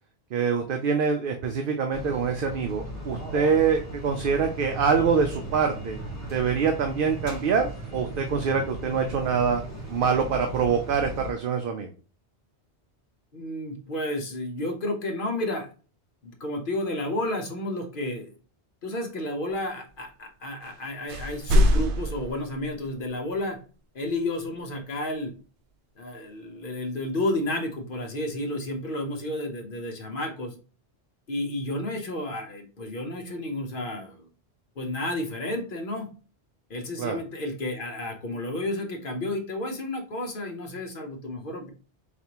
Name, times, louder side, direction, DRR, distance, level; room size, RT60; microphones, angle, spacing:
voice 1, 0.3-6.0 6.3-9.6 9.9-11.9 37.0-37.2, right 6 dB, 60° right, 5 dB, 0.7 m, -25 dB
sound 1, 1.9-11.3, right 1 dB, 15° left, 1.5 m, -37 dB
voice 2, 13.3-15.7 16.2-18.3 18.8-23.6 23.9-25.3 26.0-30.5 31.3-34.3 34.8-36.1 36.7-41.7, left 1 dB, 55° left, 3 dB, 1.0 m, -31 dB
sound 2, 20.6-20.8 21.1-23.1, equal, 90° right, 0.9 m, -24 dB
4.1 x 3.3 x 2.9 m, 0.37 s
omnidirectional pair, 1.1 m